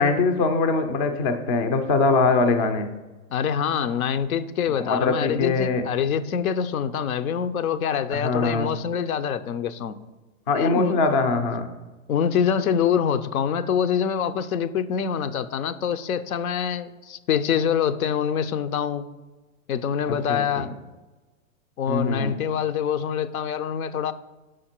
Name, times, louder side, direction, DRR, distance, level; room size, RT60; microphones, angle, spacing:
voice 1, 0.0-2.9 4.8-5.8 8.1-8.7 10.5-11.7 20.3-20.7 21.9-22.3, left 3 dB, 25° left, 7 dB, 0.4 m, -22 dB
voice 2, 3.3-10.0 10.5-11.0 12.1-19.0 19.7-20.7 21.8-24.1, left 8 dB, 80° left, 11 dB, 0.6 m, -25 dB
5.9 x 5.0 x 4.3 m, 1.2 s
hypercardioid pair, 135°, 41 cm